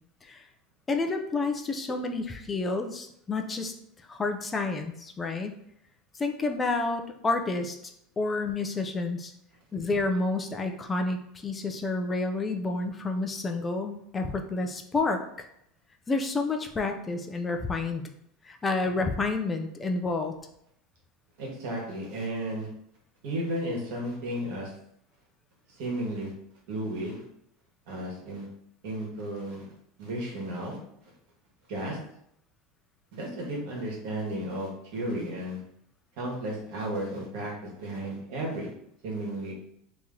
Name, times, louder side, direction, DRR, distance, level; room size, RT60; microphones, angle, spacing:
voice 1, 0.9-3.7 4.1-5.6 6.1-7.8 8.2-9.3 9.7-15.2 16.1-18.1 18.4-20.3, left 3 dB, 15° left, 5 dB, 0.4 m, -29 dB
voice 2, 21.4-22.7 23.2-24.7 25.7-26.3 26.7-27.2 27.9-28.5 28.8-29.7 30.0-30.8 31.7-32.0 33.1-35.6 36.2-38.7 39.0-39.5, right 1 dB, 70° right, -2 dB, 1.4 m, -33 dB
3.0 x 2.8 x 3.7 m, 0.73 s
supercardioid pair, 140°, 0 cm